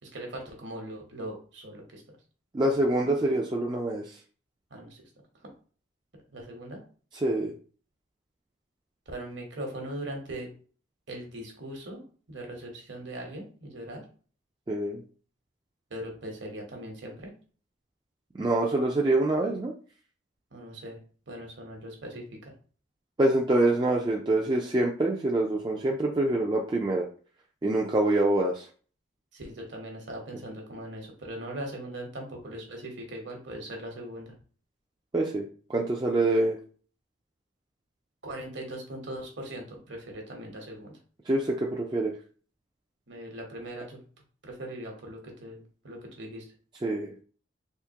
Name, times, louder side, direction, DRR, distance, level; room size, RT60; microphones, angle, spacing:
voice 1, 0.0-2.0 4.7-5.1 5.4-5.5 6.3-6.8 9.1-10.5 11.1-12.0 12.3-14.0 15.9-17.3 20.5-21.0 21.3-22.5 29.3-34.3 38.2-41.0 43.1-44.0 44.4-46.5, right 1 dB, 65° right, 2 dB, 1.1 m, -40 dB
voice 2, 2.5-4.2 7.2-7.5 14.7-15.0 18.3-19.7 23.2-27.1 27.6-28.7 35.1-36.6 41.3-42.1 46.8-47.2, right 2 dB, 20° right, -1 dB, 0.3 m, -25 dB
3.5 x 2.7 x 2.8 m, 0.40 s
head